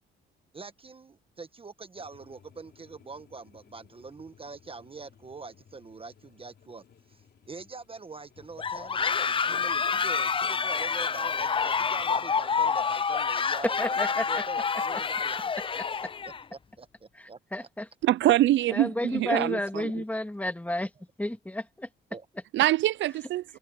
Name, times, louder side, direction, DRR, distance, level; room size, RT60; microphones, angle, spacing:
voice 1, 0.5-6.8 7.1-15.5 16.5-17.4 19.3-19.7 22.1-22.2, right 4 dB, 30° right, 1.2 m, -44 dB
sound 1, 2.0-13.0, left 8 dB, 55° left, 4.3 m, -58 dB
sound 2, 8.6-16.4, left 6 dB, 25° left, 0.5 m, -28 dB
voice 2, 13.8-14.4 14.9-15.0 15.7-15.8 17.1-17.9 18.7-20.9 21.2-21.9 22.3-22.4, left 1 dB, 5° left, 2.5 m, -32 dB
voice 3, 18.0-18.9 19.1-19.6 22.5-23.6, right 14 dB, 70° right, 0.4 m, -23 dB
cardioid pair, 90°, 20 cm